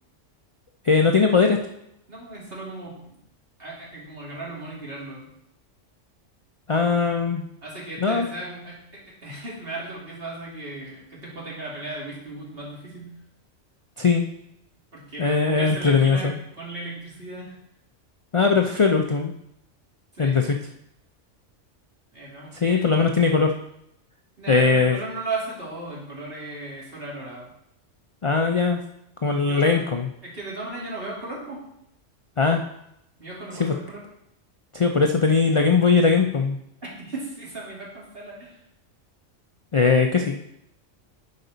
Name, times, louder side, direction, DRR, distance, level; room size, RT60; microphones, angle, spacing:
voice 1, 0.8-1.6 6.7-7.4 8.0-8.3 14.0-14.3 15.2-16.3 18.3-19.3 20.2-20.6 22.5-23.5 24.5-25.0 28.2-28.8 29.2-30.1 32.4-32.6 33.5-33.7 34.7-36.6 39.7-40.4, left 4 dB, 45° left, 3 dB, 0.4 m, -20 dB
voice 2, 2.1-3.2 3.6-5.3 7.6-13.2 14.9-17.5 20.1-20.5 22.1-22.9 24.4-27.5 29.5-29.8 30.2-31.6 33.2-34.0 36.8-38.6, right 2 dB, 50° right, -5 dB, 2.7 m, -36 dB
10.5 x 5.3 x 4.0 m, 0.79 s
omnidirectional pair, 1.3 m